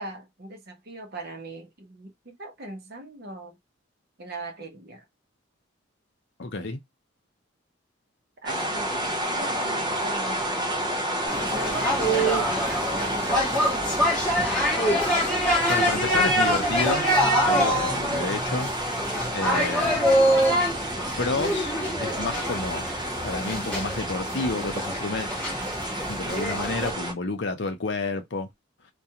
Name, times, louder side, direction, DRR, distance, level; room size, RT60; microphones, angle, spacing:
voice 1, 0.0-3.5 4.2-5.0 8.4-10.9 11.4-13.7, right 2 dB, 50° right, 0.8 m, -40 dB
voice 2, 6.4-6.8 15.7-17.1 17.4-18.7 19.3-20.2 21.2-22.9 23.2-25.3 26.1-28.5, left 3 dB, 60° left, 0.6 m, -30 dB
sound 1, 8.5-27.1, right 1 dB, 20° right, 0.5 m, -30 dB
sound 2, 11.3-26.9, equal, 5° left, 1.0 m, -25 dB
2.4 x 2.2 x 2.8 m
head